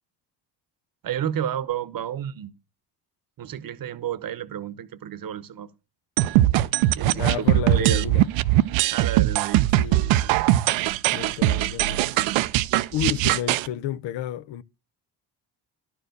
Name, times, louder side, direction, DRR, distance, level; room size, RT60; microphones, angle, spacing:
voice 1, 1.0-2.5 3.4-5.7 6.8-7.3 7.7-8.1 8.9-9.7, right 10 dB, 45° right, 0.9 m, -31 dB
sound 1, 6.2-13.7, right 15 dB, 85° right, 0.6 m, -21 dB
voice 2, 7.1-8.3 9.8-10.4 11.1-12.4 12.9-14.6, left 12 dB, 70° left, 0.7 m, -31 dB
11.0 x 4.7 x 6.4 m
supercardioid pair, 65°, 46 cm